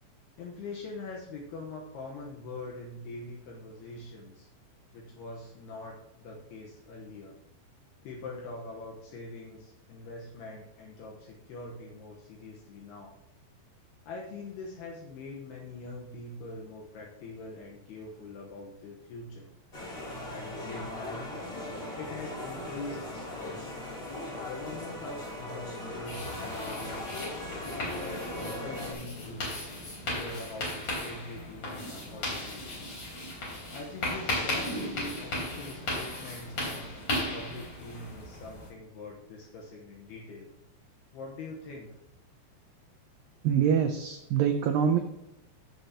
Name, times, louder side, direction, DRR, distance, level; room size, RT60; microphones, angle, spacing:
voice 1, 0.4-4.5 4.9-7.4 8.0-13.2 14.0-19.5 20.3-21.3 22.0-23.7 24.4-27.3 28.0-29.5 30.1-32.9 33.7-36.9 37.3-40.5 41.1-41.9, left 2 dB, 70° left, -2 dB, 3.0 m, -43 dB
sound 1, 19.7-28.9, left 1 dB, 25° left, 3.2 m, -39 dB
sound 2, 26.1-38.7, left 1 dB, 45° left, 5.4 m, -36 dB
voice 2, 43.4-45.0, right 8 dB, 90° right, 5 dB, 2.0 m, -25 dB
15.5 x 7.4 x 2.9 m, 0.88 s
omnidirectional pair, 5.0 m